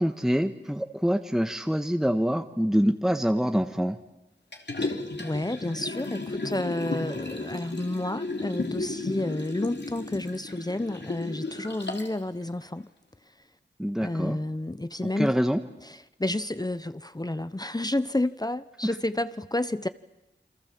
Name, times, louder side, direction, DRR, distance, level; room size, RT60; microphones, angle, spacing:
voice 1, 0.0-4.0 13.8-14.4 15.0-15.6, equal, ahead, 7 dB, 1.4 m, -25 dB
Liquid, 4.5-12.2 12.6-12.7, left 2 dB, 65° left, 3.2 m, -34 dB
voice 2, 4.8-12.9 14.0-15.4 16.2-19.9, left 1 dB, 20° left, 13 dB, 0.9 m, -30 dB
28.5 x 24.0 x 7.6 m, 0.96 s
wide cardioid pair, 45°, 19 cm